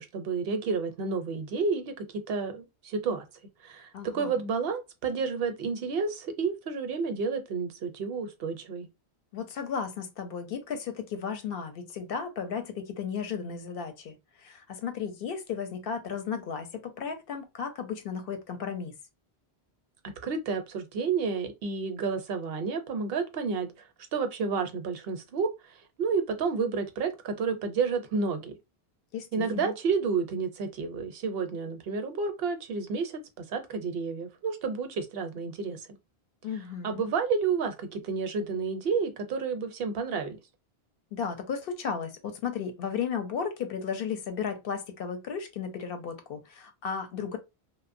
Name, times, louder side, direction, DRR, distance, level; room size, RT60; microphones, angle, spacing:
voice 1, 0.0-3.3 3.6-8.9 20.2-23.7 24.1-25.5 26.0-28.5 29.3-35.8 36.8-40.4, right 5 dB, 70° right, 0.8 m, -30 dB
voice 2, 3.9-4.4 9.3-18.9 29.1-29.7 36.4-37.0 41.1-47.4, left 6 dB, 65° left, 0.7 m, -34 dB
2.8 x 2.0 x 2.5 m
omnidirectional pair, 1.1 m